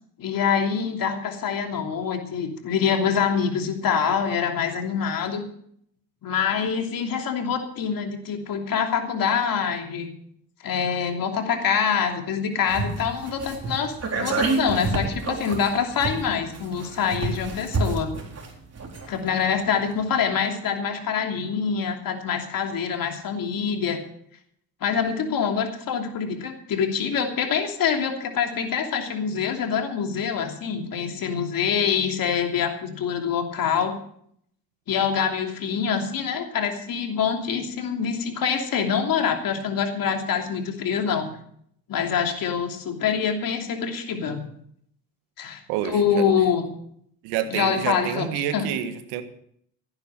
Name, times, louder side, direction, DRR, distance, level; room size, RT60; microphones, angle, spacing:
voice 1, 0.2-5.4 6.2-10.1 10.6-18.1 19.1-24.0 24.8-33.9 34.9-41.3 41.9-44.4 45.4-46.7 47.5-48.6, left 7 dB, 60° left, 3 dB, 3.0 m, -25 dB
sound 1, 12.7-19.4 19.7-19.8, right 3 dB, 40° right, 4.2 m, -29 dB
voice 2, 45.7-46.3 47.2-49.2, right 10 dB, 85° right, 10 dB, 1.5 m, -28 dB
16.5 x 9.7 x 6.5 m, 0.67 s
supercardioid pair, 70°, 38 cm